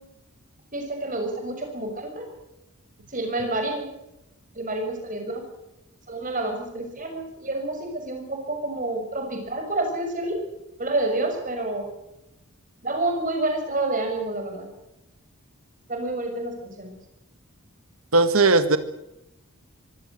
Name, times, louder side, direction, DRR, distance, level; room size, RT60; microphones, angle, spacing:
voice 1, 0.7-2.3 3.1-3.9 4.5-5.4 6.1-10.4 10.8-11.8 12.8-14.7 15.9-16.9, right 2 dB, 35° right, 3 dB, 6.5 m, -28 dB
voice 2, 18.1-18.8, right 3 dB, 70° right, 11 dB, 2.0 m, -17 dB
24.5 x 17.0 x 7.8 m, 0.89 s
head